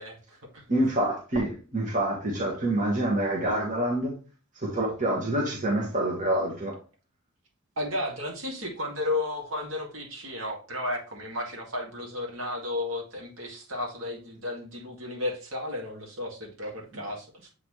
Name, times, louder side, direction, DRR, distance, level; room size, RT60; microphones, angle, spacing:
voice 1, 0.0-0.6 7.8-17.5, left 2 dB, 65° right, 2.1 m, -33 dB
voice 2, 0.7-4.1 4.6-6.8, right 1 dB, 35° right, 1.5 m, -27 dB
7.6 x 4.1 x 3.1 m
head